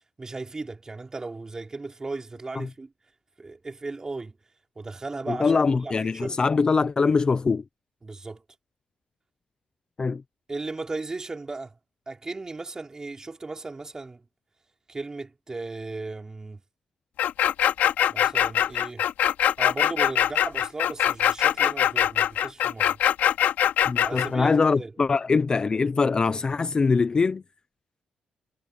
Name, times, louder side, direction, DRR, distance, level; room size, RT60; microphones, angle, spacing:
voice 1, 0.2-2.9 3.4-4.4 4.8-6.4 8.0-8.4 10.5-11.8 12.1-14.2 14.9-16.6 18.1-19.1 19.6-23.0 24.0-24.9, right 3 dB, 20° right, 4.2 m, -36 dB
voice 2, 5.3-7.6 10.0-10.2 23.9-27.4, left 4 dB, 30° left, 0.5 m, -23 dB
sound 1, 17.2-24.3, left 10 dB, 90° left, 2.5 m, -22 dB
cardioid pair, 125°, 3 cm